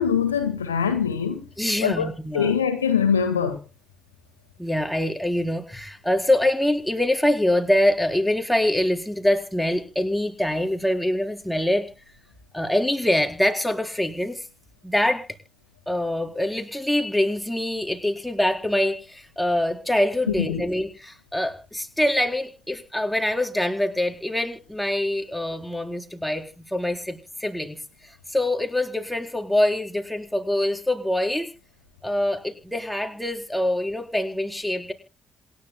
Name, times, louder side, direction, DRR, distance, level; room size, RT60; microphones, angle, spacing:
voice 1, 0.0-1.4 1.8-2.1 2.3-3.6 20.4-20.6, left 7 dB, 85° left, 1.6 m, -23 dB
voice 2, 1.6-2.5 4.6-11.9 12.5-14.5 14.8-15.2 15.9-31.5 32.0-34.9, left 1 dB, 5° left, 4.3 m, -24 dB
27.0 x 11.0 x 2.3 m
figure-of-eight pair, 45°, 0 cm